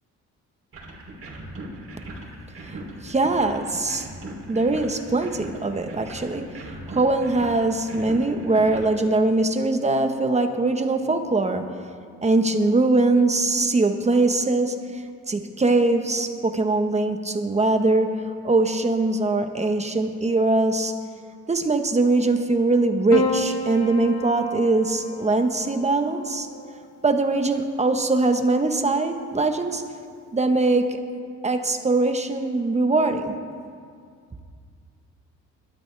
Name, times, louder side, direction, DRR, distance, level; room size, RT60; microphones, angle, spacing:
sound 1, 0.7-8.9, right 1 dB, 45° right, 3.2 m, -39 dB
voice 1, 2.6-4.1 4.5-6.5 6.9-11.7 12.2-18.1 18.4-20.9 21.5-26.5 27.0-29.8 30.3-31.0 31.4-33.3, right 2 dB, 20° right, 6 dB, 1.2 m, -22 dB
Piano, 23.1-27.6 28.8-29.5, left 3 dB, 55° left, 1.7 m, -32 dB
21.5 x 13.0 x 3.4 m, 2.2 s
cardioid pair, 90°, 30 cm